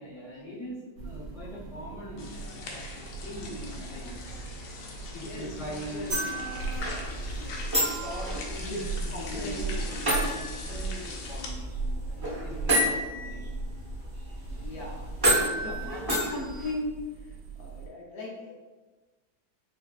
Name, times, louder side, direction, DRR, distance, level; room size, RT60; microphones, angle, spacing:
voice 1, 0.0-2.3 2.7-2.9 3.2-4.2 5.1-7.0 7.3-7.6 8.0-13.7 15.4-16.3, equal, 45° left, -9 dB, 1.1 m, -42 dB
sound 1, 1.0-17.9, right 3 dB, 75° right, 1.2 m, -39 dB
sound 2, 2.2-11.5, left 3 dB, 85° left, 1.3 m, -42 dB
voice 2, 5.2-6.2 8.6-8.8 9.1-9.6 10.2-10.4 14.5-15.2 15.5-18.6, left 1 dB, 70° left, -2 dB, 0.9 m, -38 dB
sound 3, 6.1-16.7, right 1 dB, 25° right, 0.5 m, -31 dB
5.6 x 2.0 x 2.3 m, 1.2 s
omnidirectional pair, 2.1 m